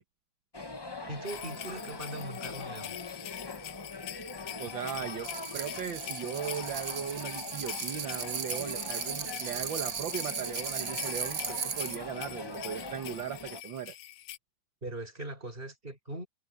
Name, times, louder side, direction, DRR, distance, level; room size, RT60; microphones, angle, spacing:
sound 1, 0.5-13.6, left 2 dB, 25° left, 0.5 m, -43 dB
voice 1, 1.1-3.0 14.8-16.3, right 2 dB, 25° right, 5.8 m, -40 dB
sound 2, 1.3-14.4, left 13 dB, 75° left, 1.5 m, -44 dB
voice 2, 4.6-14.0, right 8 dB, 70° right, 1.9 m, -38 dB
sound 3, 5.2-12.0, right 7 dB, 45° right, 0.7 m, -37 dB
omnidirectional pair, 2.3 m